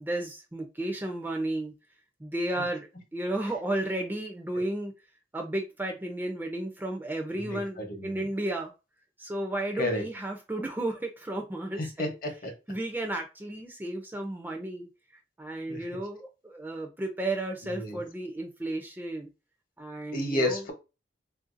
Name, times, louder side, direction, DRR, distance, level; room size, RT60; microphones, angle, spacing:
voice 1, 0.0-1.7 2.2-2.9 3.1-4.9 5.3-8.7 9.2-12.1 12.7-14.9 15.4-19.3 19.8-20.6, right 1 dB, 10° right, 3 dB, 0.4 m, -33 dB
voice 2, 7.4-8.2 9.8-10.0 11.8-12.5 15.7-15.9 17.6-18.0 20.1-20.7, left 1 dB, 50° left, 4 dB, 0.9 m, -31 dB
3.4 x 2.5 x 2.5 m, 0.28 s
head